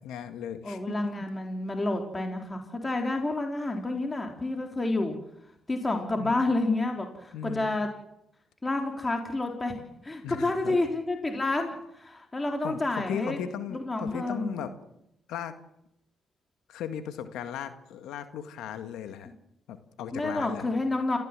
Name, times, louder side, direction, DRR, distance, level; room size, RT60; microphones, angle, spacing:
voice 1, 0.0-1.3 6.2-6.4 7.3-7.8 10.2-10.8 12.6-14.7 15.3-15.6 16.7-19.3 19.7-20.7, left 9 dB, 80° left, 9 dB, 1.8 m, -37 dB
voice 2, 0.6-5.2 5.7-7.9 8.6-9.7 10.0-13.4 13.7-14.6 20.1-21.2, left 2 dB, 25° left, 3 dB, 4.0 m, -29 dB
29.5 x 15.0 x 7.5 m, 0.82 s
supercardioid pair, 55°, 0 cm